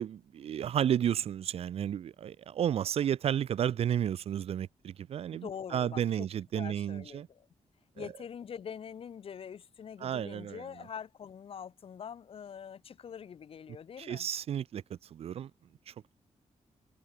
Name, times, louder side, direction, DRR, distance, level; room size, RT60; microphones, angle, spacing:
voice 1, 0.0-7.3 8.0-8.1 10.0-10.6 14.0-14.8 15.1-15.5 15.9-16.1, right 9 dB, 60° right, 0.4 m, -32 dB
voice 2, 5.3-6.3 6.5-7.5 8.0-14.3, left 7 dB, 55° left, 1.9 m, -44 dB
wide cardioid pair, 180°, 12 cm